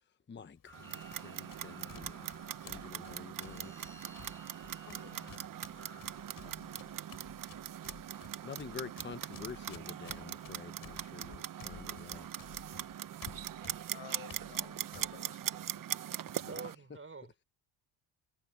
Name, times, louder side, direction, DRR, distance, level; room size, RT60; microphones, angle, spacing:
voice 1, 0.3-2.3 2.6-3.7 8.0-12.3 16.3-16.5, left 6 dB, 20° left, 1.0 m, -48 dB
Run, 0.5-15.8, left 7 dB, 40° left, 7.5 m, -56 dB
sound 1, 0.7-6.3, left 1 dB, 5° left, 1.5 m, -58 dB
Clock, 0.7-16.8, right 11 dB, 40° right, 0.8 m, -41 dB
voice 2, 4.9-5.7 6.4-7.1 13.9-16.6, left 11 dB, 60° left, 4.9 m, -55 dB
voice 3, 16.4-17.5, right 4 dB, 25° right, 6.1 m, -47 dB
cardioid pair, 100°, 50 cm